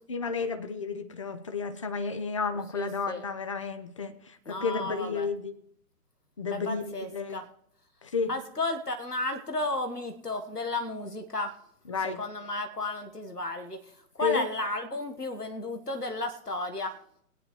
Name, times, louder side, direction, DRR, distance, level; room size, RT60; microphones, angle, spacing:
voice 1, 0.1-5.5 6.4-7.4 8.0-8.3 11.9-12.2 14.2-14.5, left 4 dB, 20° left, 10 dB, 0.5 m, -32 dB
voice 2, 2.7-3.2 4.5-5.3 6.5-7.4 8.3-11.6 12.0-13.8 14.2-17.0, left 2 dB, 90° left, 6 dB, 1.4 m, -33 dB
21.5 x 9.4 x 3.1 m, 0.71 s
figure-of-eight pair, 130°, 45 cm